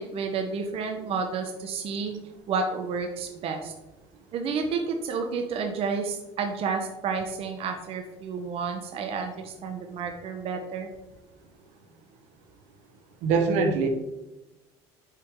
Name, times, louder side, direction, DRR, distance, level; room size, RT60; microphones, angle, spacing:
voice 1, 0.0-2.2 2.5-3.7 4.3-10.9, right 5 dB, 50° right, 4 dB, 1.0 m, -30 dB
voice 2, 13.2-13.9, right 4 dB, 75° right, 5 dB, 1.2 m, -22 dB
7.8 x 5.1 x 3.7 m, 1.0 s
supercardioid pair, 110°, 12 cm